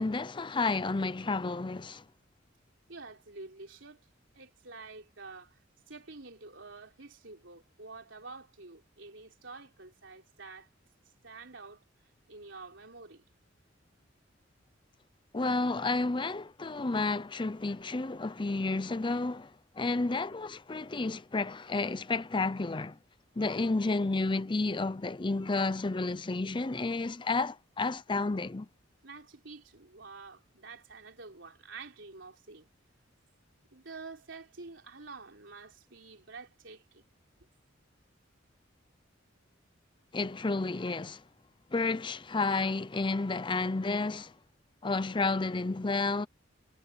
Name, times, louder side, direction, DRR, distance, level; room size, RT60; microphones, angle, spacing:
voice 1, 0.0-2.0 15.3-23.0 23.4-28.7 40.1-41.2 41.7-44.3 44.8-46.3, left 3 dB, 25° left, 0.6 m, -31 dB
voice 2, 2.9-4.1 4.3-5.6 5.9-10.7 11.2-11.8 12.3-13.2 29.0-32.7 33.7-37.0, right 3 dB, 70° right, 4.1 m, -48 dB
head